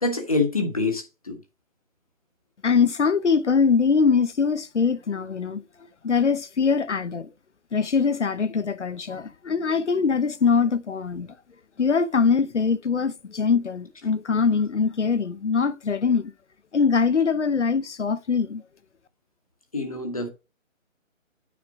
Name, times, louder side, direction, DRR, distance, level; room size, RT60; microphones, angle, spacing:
voice 1, 0.0-1.4 19.7-20.3, left 3 dB, 25° left, 1.3 m, -26 dB
voice 2, 2.6-5.6 6.0-7.3 7.7-11.3 11.8-16.3 16.7-18.6, left 5 dB, 60° left, 0.8 m, -22 dB
9.4 x 5.0 x 3.6 m
hypercardioid pair, 180°, 40 cm